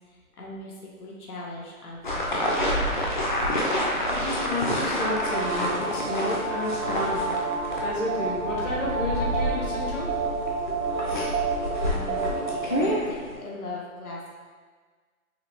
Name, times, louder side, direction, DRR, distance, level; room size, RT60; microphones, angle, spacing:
voice 1, 0.1-3.1 11.8-14.3, left 2 dB, 80° left, -3 dB, 1.1 m, -40 dB
sound 1, 2.0-13.4, equal, 35° left, 0.5 m, -29 dB
voice 2, 4.1-7.3 7.8-10.2, left 2 dB, 55° left, -4 dB, 1.1 m, -31 dB
sound 2, 5.1-12.8, right 3 dB, 90° right, 1.0 m, -29 dB
5.5 x 2.1 x 3.1 m, 1.5 s
hypercardioid pair, 155°, 44 cm